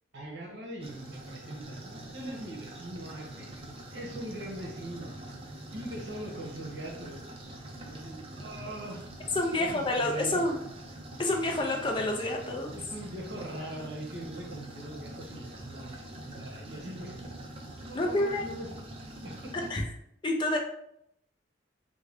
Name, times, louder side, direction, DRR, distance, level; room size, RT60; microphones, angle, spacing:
voice 1, 0.1-3.6 3.9-5.2 5.7-7.2 7.8-9.1 9.5-10.6 12.7-18.7 19.2-19.7, right 1 dB, 65° right, 0 dB, 0.9 m, -41 dB
sound 1, 0.8-19.7, right 1 dB, 30° right, 0.5 m, -44 dB
voice 2, 9.3-10.6 11.2-12.7 17.9-18.4 19.5-19.8 20.2-20.6, left 1 dB, 25° left, 2 dB, 0.4 m, -28 dB
3.6 x 2.2 x 3.3 m, 0.73 s
head